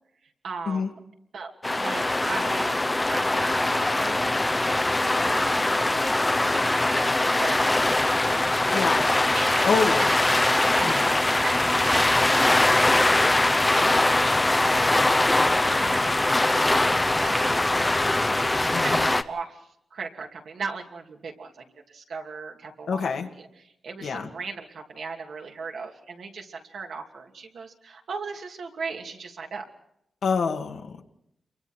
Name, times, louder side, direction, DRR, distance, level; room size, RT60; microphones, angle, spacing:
voice 1, 0.4-0.9 1.3-2.8 3.1-4.3 4.6-5.7 6.0-8.2 9.3-10.4 10.8-16.5 17.1-17.6 18.2-19.6 19.9-29.6, right 4 dB, 80° right, 2 dB, 2.8 m, -38 dB
sound 1, 1.6-19.2, left 2 dB, 20° left, 0.8 m, -22 dB
voice 2, 8.7-9.1 9.6-10.1 10.8-11.0 18.7-19.0 22.9-23.3 24.0-24.3 30.2-31.0, left 5 dB, 80° left, 3 dB, 2.2 m, -26 dB
29.0 x 23.5 x 4.6 m, 0.77 s
wide cardioid pair, 110°, 0 cm